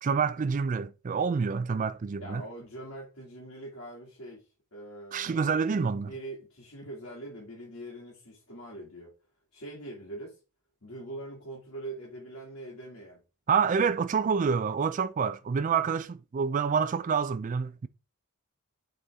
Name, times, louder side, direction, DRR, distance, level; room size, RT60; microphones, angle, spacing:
voice 1, 0.0-2.4 5.1-6.1 13.5-17.9, right 6 dB, 35° right, 0.3 m, -27 dB
voice 2, 2.2-9.1 9.5-10.4 10.8-13.2, right 1 dB, 70° left, 2.3 m, -43 dB
7.9 x 4.2 x 3.6 m
head